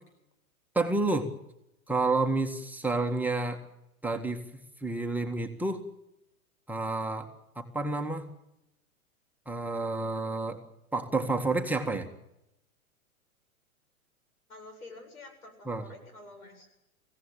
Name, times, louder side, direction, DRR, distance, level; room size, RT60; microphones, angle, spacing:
voice 1, 0.7-1.3 1.9-3.6 4.0-5.8 6.7-7.3 7.6-8.3 9.5-10.6 10.9-12.1 15.7-15.8, right 2 dB, 5° right, 2 dB, 1.9 m, -29 dB
voice 2, 14.5-16.7, left 2 dB, 90° left, 4 dB, 7.9 m, -48 dB
24.0 x 16.5 x 8.8 m, 0.87 s
hypercardioid pair, 120°, 43 cm